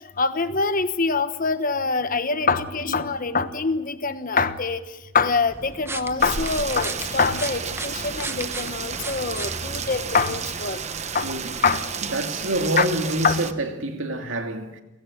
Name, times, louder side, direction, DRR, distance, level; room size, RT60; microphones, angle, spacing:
voice 1, 0.2-4.8 5.1-10.8 11.1-11.3 11.6-11.8 12.8-12.9 13.2-13.3, left 4 dB, 40° left, 1.2 m, -24 dB
sound 1, 5.5-10.4, right 2 dB, 10° right, 0.9 m, -36 dB
Rain, 6.2-13.5, right 6 dB, 35° right, 1.1 m, -32 dB
voice 2, 11.2-11.5 12.1-14.8, right 1 dB, 65° right, 2.6 m, -26 dB
29.0 x 17.5 x 7.3 m
head